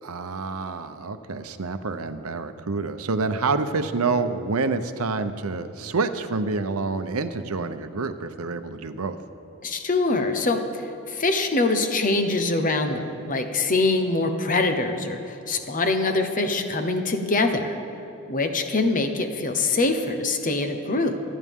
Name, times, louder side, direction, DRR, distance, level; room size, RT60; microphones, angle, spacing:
voice 1, 0.0-9.2, right 4 dB, 85° right, 9 dB, 0.8 m, -27 dB
voice 2, 9.6-17.7 18.3-21.1, left 3 dB, 40° left, 6 dB, 1.1 m, -24 dB
26.0 x 9.7 x 3.7 m, 2.9 s
head